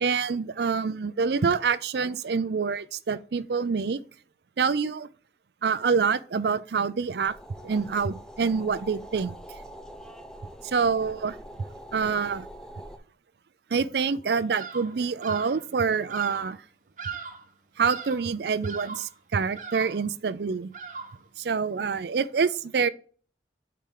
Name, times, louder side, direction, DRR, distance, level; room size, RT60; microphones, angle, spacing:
voice 1, 0.0-4.0 4.6-5.1 5.6-7.3 7.6-9.3 10.6-11.4 11.9-12.5 13.7-16.6 17.8-20.7 21.4-22.9, right 5 dB, 60° right, 0.4 m, -26 dB
sound 1, 7.2-13.0, equal, 5° left, 0.6 m, -44 dB
Bird vocalization bird call bird song, 14.5-15.0 15.2-15.7 16.1-16.5 17.0-17.5 17.8-18.3 18.6-19.1 19.6-20.1 20.7-21.3, right 6 dB, 45° right, 1.1 m, -39 dB
8.4 x 4.3 x 3.7 m
head